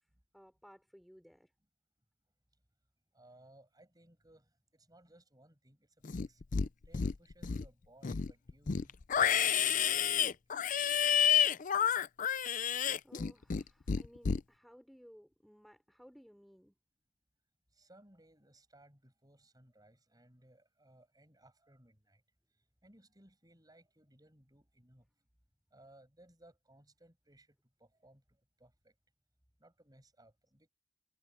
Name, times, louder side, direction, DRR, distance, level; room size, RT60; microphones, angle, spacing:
voice 1, 0.3-1.5 13.0-16.7, equal, ahead, 5.1 m, -59 dB
voice 2, 3.1-6.4 6.8-9.0 9.3-10.4 17.7-22.2 22.8-25.1 25.7-28.9 29.6-30.7, right 1 dB, 20° right, 7.2 m, -63 dB
Livestock farm animals working animals, 6.0-6.7 6.9-7.7 8.0-13.6 13.9-14.4, left 8 dB, 40° left, 0.4 m, -30 dB
head